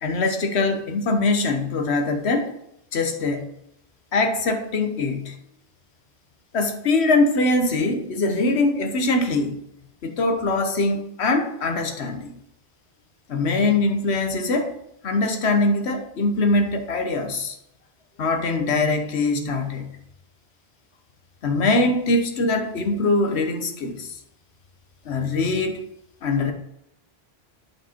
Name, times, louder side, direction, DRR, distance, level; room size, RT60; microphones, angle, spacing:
voice 1, 0.0-2.5 2.9-3.5 4.1-5.3 6.5-9.6 10.0-12.3 13.3-14.7 15.0-17.6 18.2-19.9 21.4-24.1 25.0-25.8 26.2-26.5, left 2 dB, 80° left, 1.3 m, -22 dB
8.8 x 5.0 x 4.4 m
omnidirectional pair, 1.1 m